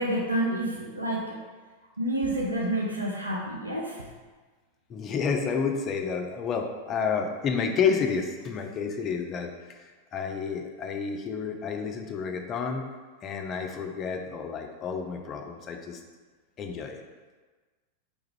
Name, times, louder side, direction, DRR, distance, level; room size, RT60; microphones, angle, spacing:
voice 1, 0.0-1.4 2.0-4.0, right 1 dB, 85° right, -3 dB, 0.4 m, -29 dB
voice 2, 4.9-9.9 10.1-12.9 13.2-16.0 16.6-17.0, left 6 dB, 30° left, 4 dB, 0.3 m, -30 dB
3.3 x 2.4 x 3.1 m, 1.3 s
figure-of-eight pair, 90°, 0 cm